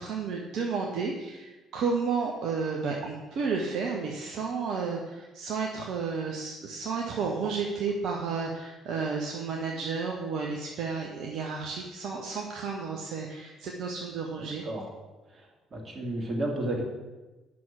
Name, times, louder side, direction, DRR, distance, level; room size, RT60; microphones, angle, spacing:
voice 1, 0.0-14.6, right 5 dB, 55° right, 0 dB, 1.1 m, -32 dB
voice 2, 15.7-16.8, right 1 dB, 40° right, 1 dB, 2.5 m, -31 dB
9.2 x 6.3 x 6.1 m, 1.2 s
figure-of-eight pair, 50°, 0 cm